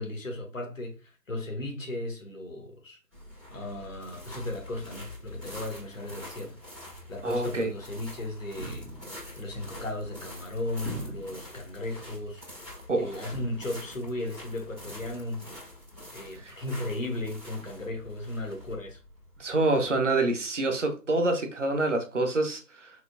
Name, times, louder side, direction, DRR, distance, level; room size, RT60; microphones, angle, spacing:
voice 1, 0.0-3.0 3.5-6.6 7.1-8.9 9.4-12.4 13.0-15.5 16.1-19.0, left 1 dB, 50° left, 1.4 m, -36 dB
sound 1, 3.1-20.0, left 1 dB, 5° right, 2.3 m, -46 dB
voice 2, 7.2-7.7 12.9-13.2 16.4-16.6 19.4-22.9, right 2 dB, 45° right, 0.9 m, -27 dB
sound 2, 8.5-9.3 10.8-11.6 13.3-13.4, right 1 dB, 65° right, 2.5 m, -39 dB
4.7 x 4.0 x 2.6 m
figure-of-eight pair, 165°, 49 cm